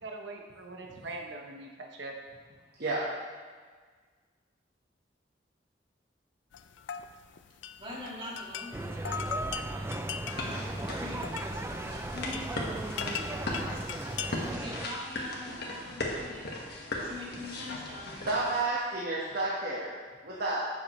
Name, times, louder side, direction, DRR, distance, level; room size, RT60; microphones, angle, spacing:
voice 1, 0.0-2.1, right 2 dB, 75° right, 1 dB, 0.9 m, -42 dB
sound 1, 6.5-14.6, left 6 dB, 85° left, 0.4 m, -40 dB
voice 2, 7.8-12.4 13.5-13.8 14.2-16.5 16.9-18.4, left 1 dB, 30° right, -6 dB, 2.4 m, -44 dB
sound 2, 8.7-14.9, right 2 dB, 15° right, 0.3 m, -37 dB
sound 3, 10.3-18.6, left 2 dB, 60° left, 1.5 m, -38 dB
voice 3, 18.2-19.9 20.2-20.6, right 2 dB, 60° right, -6 dB, 1.3 m, -30 dB
11.5 x 7.1 x 3.1 m, 1.5 s
head